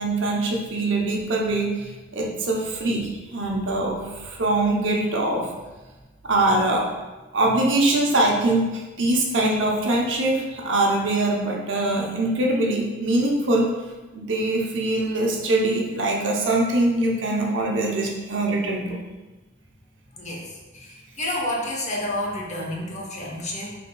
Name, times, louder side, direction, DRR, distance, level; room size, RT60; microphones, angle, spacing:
voice 1, 0.0-5.5 6.2-6.9 7.3-13.7 14.1-19.0, right 2 dB, 80° right, -1 dB, 0.8 m, -23 dB
voice 2, 20.2-23.8, left 1 dB, 40° left, -2 dB, 0.9 m, -30 dB
5.6 x 3.5 x 2.3 m, 1.2 s
head